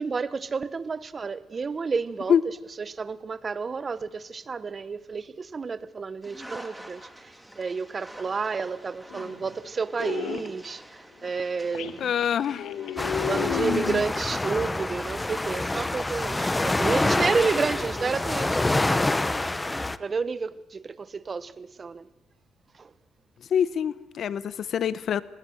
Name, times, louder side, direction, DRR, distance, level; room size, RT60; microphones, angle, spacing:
voice 1, 0.0-12.1 13.1-19.4 20.0-22.1 22.7-22.9, right 5 dB, 35° right, 0.9 m, -31 dB
sound 1, 6.2-19.8, equal, 5° right, 3.3 m, -46 dB
sound 2, 9.1-9.5 10.0-10.5 11.2-11.3 11.7-14.1, left 8 dB, 80° left, 1.5 m, -31 dB
voice 2, 12.0-12.7 23.5-25.2, left 8 dB, 60° left, 0.9 m, -25 dB
sound 3, 13.0-20.0, left 2 dB, 15° left, 0.9 m, -27 dB
24.0 x 20.5 x 7.8 m
cardioid pair, 90°, 0 cm